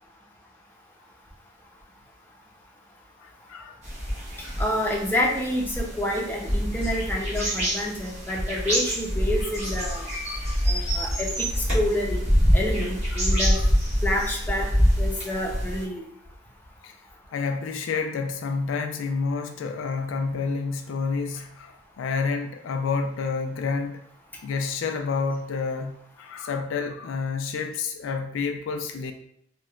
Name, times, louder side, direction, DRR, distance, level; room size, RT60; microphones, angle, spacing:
voice 1, 3.2-3.8 9.8-10.6 13.2-13.7 16.8-17.0 17.3-24.0 24.4-29.1, left 4 dB, 75° left, 5 dB, 0.3 m, -29 dB
sound 1, 3.8-15.8, equal, 35° right, 1.1 m, -25 dB
voice 2, 4.6-10.0 10.7-12.2 12.5-13.6 14.0-14.7 15.0-16.0, left 1 dB, 10° left, -3 dB, 0.6 m, -28 dB
3.1 x 2.8 x 2.4 m, 0.73 s
head